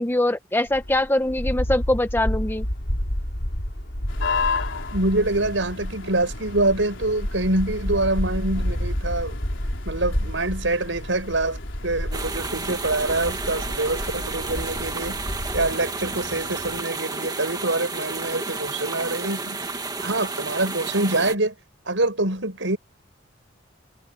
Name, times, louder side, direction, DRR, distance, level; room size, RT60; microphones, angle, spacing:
voice 1, 0.0-2.7, left 1 dB, 10° left, 0.8 m, -23 dB
sound 1, 0.7-15.7, equal, 70° left, 3.9 m, -30 dB
sound 2, 4.1-16.8, left 4 dB, 85° left, 3.7 m, -35 dB
voice 2, 4.9-9.4 9.8-15.2 15.5-21.5 21.8-22.8, right 2 dB, 80° right, 6.2 m, -25 dB
sound 3, 12.1-21.4, right 3 dB, 20° right, 1.9 m, -32 dB
head